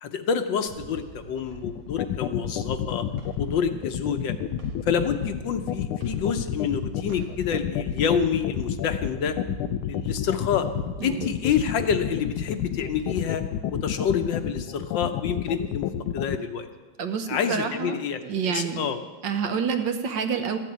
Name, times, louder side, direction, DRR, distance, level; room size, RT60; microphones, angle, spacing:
voice 1, 0.0-3.1 3.4-4.3 4.8-9.3 9.9-10.7 11.0-13.4 13.7-15.9 16.1-16.7 17.3-18.2 18.4-19.0, left 7 dB, 70° left, 8 dB, 1.5 m, -27 dB
sound 1, 0.7-13.3, right 2 dB, 80° right, 2.3 m, -42 dB
sound 2, 1.6-16.4, left 11 dB, 90° left, 1.5 m, -29 dB
voice 2, 11.0-11.3 17.0-18.0 18.2-18.8 19.2-20.6, right 6 dB, 65° right, 7 dB, 1.6 m, -28 dB
14.0 x 7.5 x 9.2 m, 1.3 s
omnidirectional pair, 2.3 m